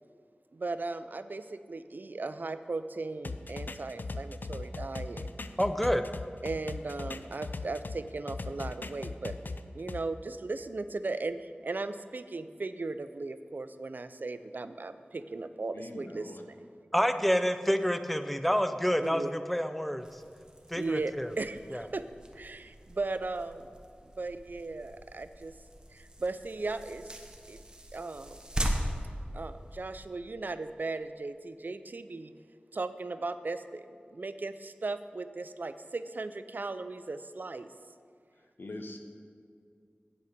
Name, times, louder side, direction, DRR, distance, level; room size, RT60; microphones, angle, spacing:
voice 1, 0.5-5.3 6.4-9.3 9.7-16.6 19.0-19.4 20.7-22.0 22.3-23.7 24.2-25.5 25.9-27.1 27.5-27.6 27.9-28.4 29.3-32.3 32.7-37.7, right 3 dB, 60° right, 11 dB, 0.4 m, -37 dB
sound 1, 3.2-8.0 8.3-10.0, left 3 dB, 60° left, 0.4 m, -38 dB
voice 2, 5.6-6.0 16.9-20.1 20.7-21.3 21.7-21.8, equal, 5° left, 9 dB, 0.5 m, -28 dB
voice 3, 15.7-16.4 38.6-39.0, left 2 dB, 75° left, 4 dB, 0.9 m, -42 dB
sound 2, 20.0-30.1, equal, 25° right, 1.0 m, -40 dB
8.3 x 7.8 x 5.1 m, 2.2 s
wide cardioid pair, 65°, 4 cm